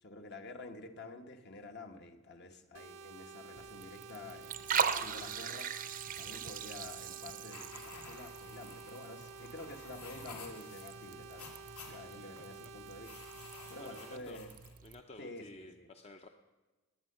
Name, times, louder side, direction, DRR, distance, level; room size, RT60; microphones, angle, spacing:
voice 1, 0.0-11.5 11.9-13.1 13.7-14.5 15.2-15.9, left 2 dB, 50° left, 6 dB, 1.2 m, -49 dB
sound 1, 2.7-14.2, right 4 dB, 80° right, 0.9 m, -51 dB
Liquid, 3.6-15.0, right 7 dB, 40° right, 0.6 m, -41 dB
sound 2, 7.5-14.7, left 4 dB, 80° left, 2.7 m, -53 dB
voice 2, 11.8-12.8 13.8-14.4 14.8-16.3, left 2 dB, 30° left, 5 dB, 0.7 m, -54 dB
19.0 x 9.5 x 6.6 m, 1.2 s
head